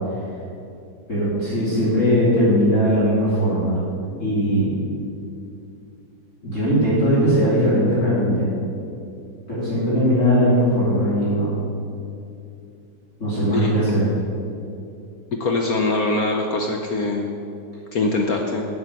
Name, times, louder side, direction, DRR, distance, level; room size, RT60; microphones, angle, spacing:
voice 1, 1.1-3.8 4.2-4.7 6.4-8.5 9.5-11.6 13.2-14.1, equal, 40° left, -10 dB, 3.4 m, -19 dB
voice 2, 15.4-17.2 17.9-18.7, left 2 dB, 60° left, 2 dB, 1.2 m, -22 dB
9.5 x 8.4 x 7.5 m, 2.6 s
omnidirectional pair, 2.1 m